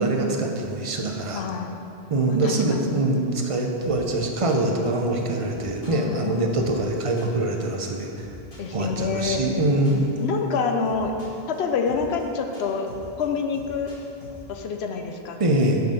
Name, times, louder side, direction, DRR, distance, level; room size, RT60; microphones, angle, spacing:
voice 1, 0.0-1.4 2.1-8.3 8.7-10.1 15.4-15.8, right 2 dB, 35° right, 2 dB, 0.7 m, -24 dB
voice 2, 1.3-1.8 2.3-3.0 5.8-6.8 8.6-9.4 10.2-11.1 11.5-12.9 13.2-13.9 14.5-15.4, left 5 dB, 80° left, 4 dB, 0.9 m, -27 dB
sound 1, 3.8-14.4, equal, 55° left, 2.0 m, -44 dB
6.7 x 4.3 x 6.4 m, 2.8 s
omnidirectional pair, 1.1 m